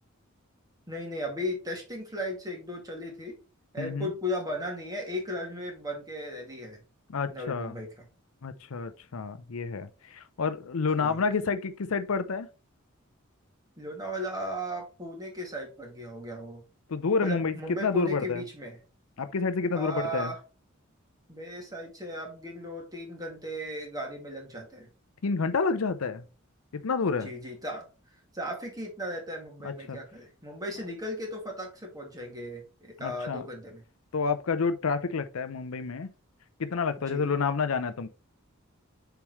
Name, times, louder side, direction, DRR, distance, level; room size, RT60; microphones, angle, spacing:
voice 1, 0.9-3.4 3.7-6.8 7.3-8.1 11.0-11.2 13.8-16.6 17.2-18.8 19.7-20.4 21.3-24.9 27.2-27.9 28.3-33.8 37.1-37.3, equal, 20° right, 2.1 m, -36 dB
voice 2, 3.8-4.1 7.1-7.8 8.4-12.5 16.9-17.5 17.8-18.4 19.2-20.3 25.2-26.2 26.8-27.3 29.6-30.0 33.0-33.4 34.1-36.1 36.6-38.1, left 4 dB, 75° left, 0.6 m, -29 dB
7.1 x 4.7 x 3.0 m
head